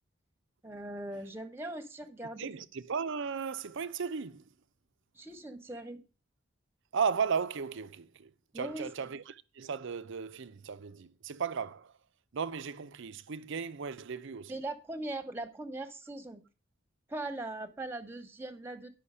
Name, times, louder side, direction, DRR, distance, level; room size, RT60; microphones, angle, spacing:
voice 1, 0.6-2.6 5.1-6.0 8.5-8.9 14.5-16.4 17.1-18.9, right 2 dB, 10° right, 1.1 m, -40 dB
voice 2, 2.4-4.4 6.9-8.3 8.5-11.9 12.3-14.5, right 6 dB, 65° right, 0.6 m, -35 dB
10.0 x 5.7 x 5.6 m
head